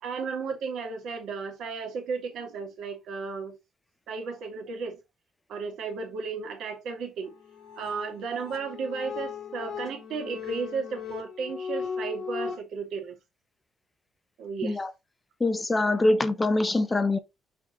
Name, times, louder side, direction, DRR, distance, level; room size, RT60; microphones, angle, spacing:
voice 1, 0.0-3.6 4.1-5.0 5.5-7.3 7.8-13.2 14.4-14.8, right 5 dB, 70° right, 2.1 m, -34 dB
sound 1, 7.2-12.6, left 6 dB, 60° left, 2.5 m, -37 dB
voice 2, 15.4-17.2, left 2 dB, 15° left, 0.6 m, -24 dB
6.0 x 4.8 x 4.1 m
cardioid pair, 165°, 0 cm